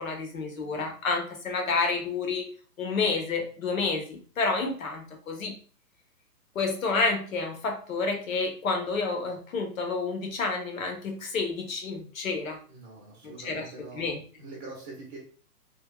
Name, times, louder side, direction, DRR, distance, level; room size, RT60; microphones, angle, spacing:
voice 1, 0.0-2.5 2.8-5.5 6.5-12.6 13.2-13.7 13.9-14.2, left 4 dB, 55° left, 3 dB, 0.9 m, -29 dB
voice 2, 12.7-14.1 14.4-15.2, right 3 dB, 15° right, -4 dB, 0.8 m, -44 dB
3.5 x 2.4 x 2.2 m, 0.41 s
hypercardioid pair, 165°, 50 cm